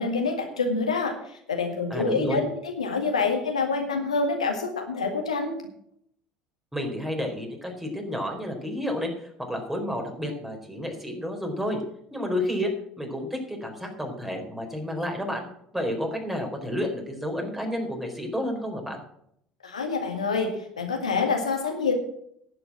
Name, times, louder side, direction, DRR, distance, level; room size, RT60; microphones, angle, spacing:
voice 1, 0.0-5.5 19.6-22.0, left 4 dB, 90° left, 3 dB, 2.0 m, -27 dB
voice 2, 1.9-2.4 6.7-11.8 12.1-12.7 13.0-15.4 15.7-19.0, left 1 dB, 10° right, 3 dB, 4.4 m, -30 dB
11.0 x 7.9 x 7.5 m, 0.70 s
hypercardioid pair, 65°, 3 cm